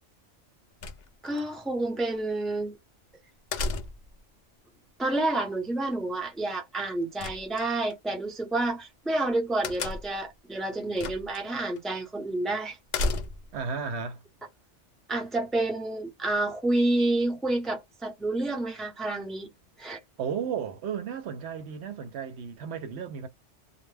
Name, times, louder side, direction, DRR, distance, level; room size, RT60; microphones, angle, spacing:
sound 1, 0.8-1.4 3.5-4.2 7.2-7.9 9.6-10.3 11.0-11.4 11.8-11.9 12.9-13.6, left 3 dB, 60° left, 0.4 m, -32 dB
voice 1, 1.2-2.8 5.0-12.8 15.1-19.5 19.8-20.0, right 2 dB, ahead, 0.6 m, -29 dB
voice 2, 13.5-14.2 20.2-23.3, right 6 dB, 70° right, 0.8 m, -34 dB
2.1 x 2.1 x 3.2 m
omnidirectional pair, 1.2 m